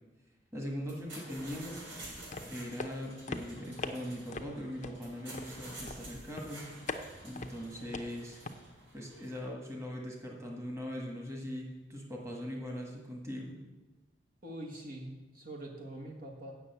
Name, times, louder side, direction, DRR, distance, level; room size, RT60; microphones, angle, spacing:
voice 1, 0.5-1.9 2.4-6.7 7.2-8.4 8.9-13.6, equal, 15° right, 0 dB, 1.7 m, -41 dB
sound 1, 0.8-9.4, right 1 dB, 80° right, 3.2 m, -50 dB
sound 2, 2.0-8.5, left 3 dB, 40° left, 0.7 m, -44 dB
voice 2, 14.4-16.5, right 1 dB, 50° right, 0 dB, 1.4 m, -44 dB
8.4 x 6.5 x 8.1 m, 1.1 s
head